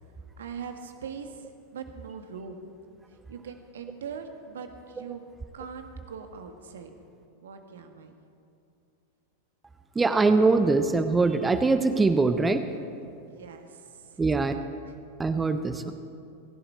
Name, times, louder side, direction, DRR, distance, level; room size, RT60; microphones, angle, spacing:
voice 1, 0.4-2.7 3.3-5.2 5.5-6.9 7.4-8.2 13.3-14.6, right 6 dB, 60° right, 6 dB, 1.5 m, -41 dB
voice 2, 10.0-12.6 14.2-14.5 15.2-15.9, right 3 dB, 10° right, 9 dB, 0.7 m, -22 dB
27.5 x 11.5 x 4.5 m, 2.5 s
figure-of-eight pair, 90°, 0 cm